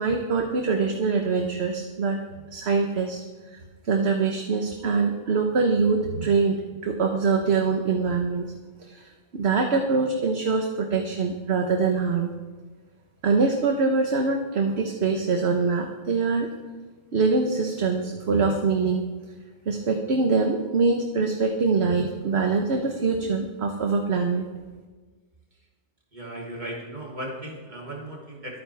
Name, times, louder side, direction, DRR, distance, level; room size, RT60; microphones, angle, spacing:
voice 1, 0.0-2.2 2.5-3.2 3.5-3.6 3.9-8.5 8.8-12.3 13.2-16.5 17.1-19.0 19.7-24.5, right 4 dB, 60° right, 3 dB, 1.3 m, -24 dB
voice 2, 26.1-28.6, right 1 dB, 40° right, -3 dB, 3.1 m, -36 dB
23.0 x 9.6 x 3.4 m, 1.3 s
omnidirectional pair, 1.3 m